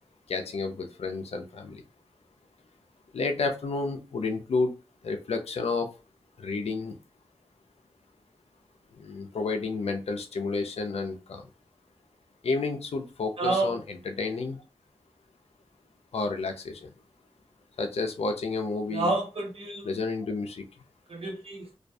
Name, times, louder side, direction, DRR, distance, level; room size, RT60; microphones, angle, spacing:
voice 1, 0.3-1.8 3.1-4.7 5.0-5.9 6.4-7.0 9.0-11.4 12.4-14.6 16.1-16.9 17.8-19.1 19.8-20.6, left 3 dB, 85° left, 0.5 m, -30 dB
voice 2, 13.4-13.8 18.9-19.9 21.1-21.7, right 2 dB, 70° right, 0.9 m, -29 dB
2.4 x 2.3 x 2.6 m
wide cardioid pair, 60°, 10 cm